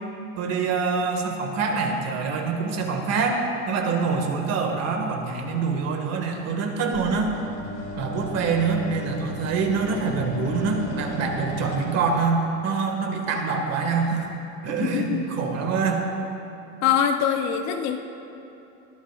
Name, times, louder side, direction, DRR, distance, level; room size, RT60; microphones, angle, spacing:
voice 1, 0.4-7.4 8.0-14.3 14.6-16.1, right 4 dB, 40° right, 3 dB, 1.9 m, -25 dB
sound 1, 6.9-11.9, left 2 dB, 25° left, 2.9 m, -35 dB
voice 2, 14.8-15.3 16.8-18.0, left 8 dB, 45° left, 6 dB, 0.8 m, -23 dB
21.5 x 11.5 x 2.5 m, 2.9 s
supercardioid pair, 120°, 39 cm